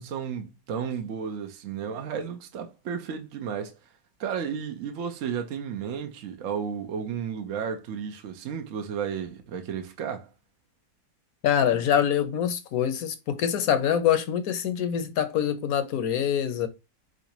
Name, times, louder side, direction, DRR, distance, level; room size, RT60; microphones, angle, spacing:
voice 1, 0.0-3.8 4.2-10.3, right 7 dB, 60° right, 1.0 m, -33 dB
voice 2, 11.4-16.7, left 9 dB, 70° left, 1.2 m, -25 dB
4.7 x 4.0 x 2.6 m
omnidirectional pair, 1.6 m